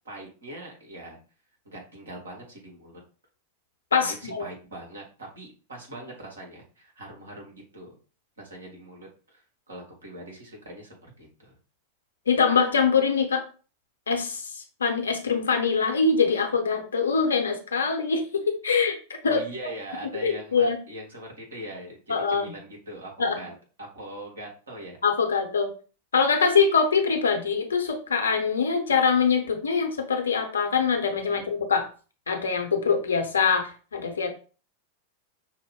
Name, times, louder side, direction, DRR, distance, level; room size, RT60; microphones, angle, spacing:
voice 1, 0.0-1.2 1.6-3.0 4.0-8.0 8.4-11.6 19.2-23.5 23.8-25.0 31.2-31.5, right 1 dB, 70° right, -1 dB, 1.5 m, -41 dB
voice 2, 3.9-4.4 12.3-13.4 14.1-19.4 20.2-20.8 22.1-22.5 23.2-23.4 25.0-25.7 26.1-31.9 32.3-34.3, left 5 dB, 70° left, 4 dB, 0.8 m, -24 dB
5.4 x 2.1 x 3.5 m, 0.36 s
figure-of-eight pair, 90°, 0 cm